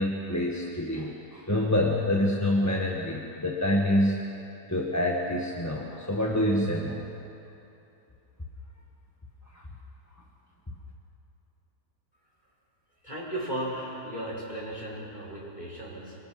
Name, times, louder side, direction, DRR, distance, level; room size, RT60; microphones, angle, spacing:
voice 1, 0.0-4.2 4.7-7.0 9.5-9.7, left 1 dB, 10° left, -2 dB, 1.5 m, -27 dB
voice 2, 13.0-16.2, right 1 dB, 25° left, -5 dB, 6.0 m, -35 dB
26.0 x 23.0 x 6.1 m, 2.8 s
omnidirectional pair, 1.7 m